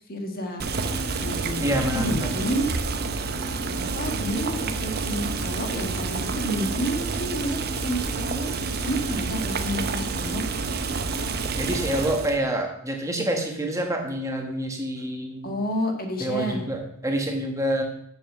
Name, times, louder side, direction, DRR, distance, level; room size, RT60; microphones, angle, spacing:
voice 1, 0.1-0.6 1.2-1.7 1.9-2.7 3.8-8.6 8.8-10.4 15.4-16.6, equal, 45° left, 3 dB, 1.6 m, -30 dB
Boiling, 0.6-12.4, right 4 dB, 45° right, 0.8 m, -29 dB
voice 2, 1.6-2.3 11.6-15.5 16.2-17.8, right 1 dB, 15° right, 2 dB, 1.3 m, -27 dB
7.6 x 7.3 x 6.8 m, 0.72 s
head